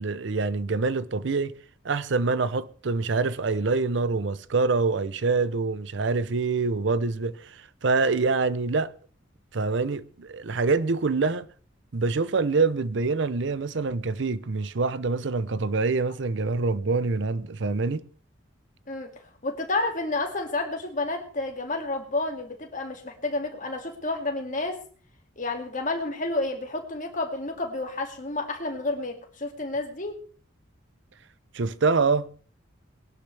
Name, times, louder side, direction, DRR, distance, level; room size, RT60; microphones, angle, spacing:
voice 1, 0.0-1.5 1.8-8.9 9.5-11.5 11.9-18.0 31.5-32.3, right 4 dB, 60° right, 0.6 m, -25 dB
voice 2, 18.9-24.8 25.4-30.2, left 2 dB, 40° left, 2.2 m, -30 dB
20.5 x 11.5 x 3.3 m
head